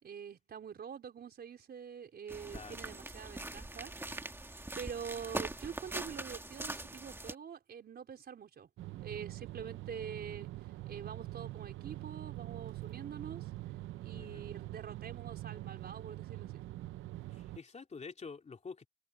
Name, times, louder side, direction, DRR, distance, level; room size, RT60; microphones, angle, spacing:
voice 1, 0.0-4.3 4.7-8.7 9.0-10.5 10.9-13.4 14.0-16.6, right 7 dB, 55° right, 4.5 m, -45 dB
sound 1, 2.3-7.3, right 2 dB, 10° right, 2.1 m, -42 dB
voice 2, 2.5-2.9 14.1-14.5 17.3-18.9, left 5 dB, 35° left, 3.0 m, -48 dB
sound 2, 8.8-17.6, right 16 dB, 80° right, 0.7 m, -44 dB
cardioid pair, 90°, 20 cm